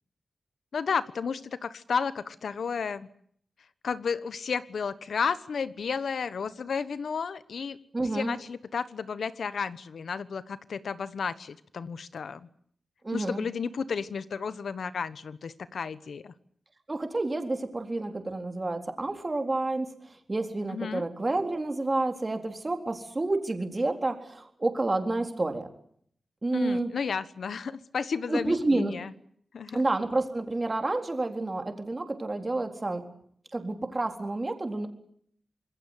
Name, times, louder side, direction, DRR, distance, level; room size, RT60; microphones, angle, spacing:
voice 1, 0.7-3.1 3.8-7.8 8.1-12.5 13.1-16.3 20.7-21.0 26.5-29.1 29.5-29.8, left 6 dB, 80° left, 15 dB, 1.2 m, -32 dB
voice 2, 7.9-8.3 13.0-13.4 16.9-25.7 26.4-26.9 28.3-28.9 29.7-33.0 33.5-34.9, right 2 dB, 25° right, 5 dB, 4.0 m, -29 dB
26.0 x 21.0 x 8.2 m, 0.65 s
wide cardioid pair, 100°, 0 cm